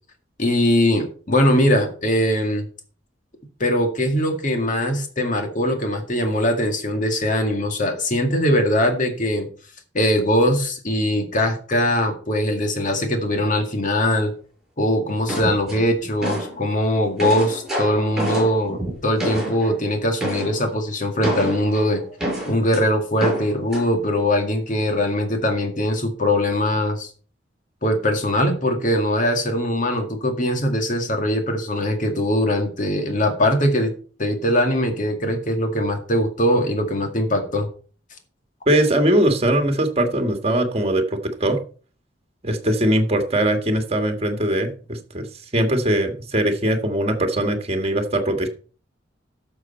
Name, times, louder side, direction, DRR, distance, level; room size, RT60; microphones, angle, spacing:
voice 1, 0.4-2.7 3.6-9.5 9.9-14.3 14.8-22.0 22.5-27.1 27.8-33.9 34.2-37.7, left 1 dB, 45° left, 4 dB, 2.1 m, -21 dB
sound 1, 15.3-16.6 17.0-19.7 20.2-20.6 21.2-22.8 23.2-23.9, right 1 dB, 5° right, 6.0 m, -27 dB
voice 2, 38.7-41.6 42.4-45.3 45.5-48.5, right 1 dB, 35° right, 5 dB, 1.7 m, -21 dB
12.5 x 6.7 x 4.4 m, 0.40 s
head